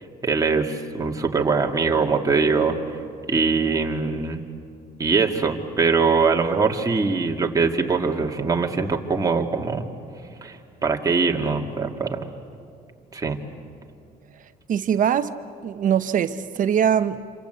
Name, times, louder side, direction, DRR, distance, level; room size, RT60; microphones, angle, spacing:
voice 1, 0.2-2.8 3.3-4.4 5.0-9.8 10.4-10.6 10.8-12.3 13.1-13.4, right 4 dB, 20° right, 2.3 m, -22 dB
voice 2, 14.7-15.4 15.6-17.2, right 8 dB, 50° right, 1.0 m, -22 dB
27.0 x 27.0 x 8.2 m
cardioid pair, 110°, 17 cm